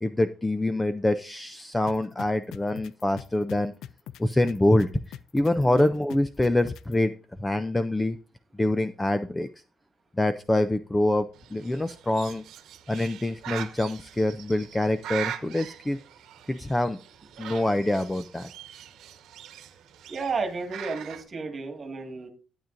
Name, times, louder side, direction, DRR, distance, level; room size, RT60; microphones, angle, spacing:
voice 1, 0.0-3.7 4.2-7.1 7.4-8.2 8.5-9.5 10.2-12.4 12.9-16.0 16.5-17.0 17.4-18.5, left 1 dB, 10° left, 12 dB, 0.4 m, -25 dB
sound 1, 1.9-6.9, left 10 dB, 75° left, 0.4 m, -41 dB
Bird, 11.3-21.2, right 10 dB, 75° right, 1.0 m, -41 dB
voice 2, 20.1-22.3, right 4 dB, 25° right, 4 dB, 1.7 m, -32 dB
12.0 x 8.8 x 2.5 m, 0.35 s
cardioid pair, 175°, 0 cm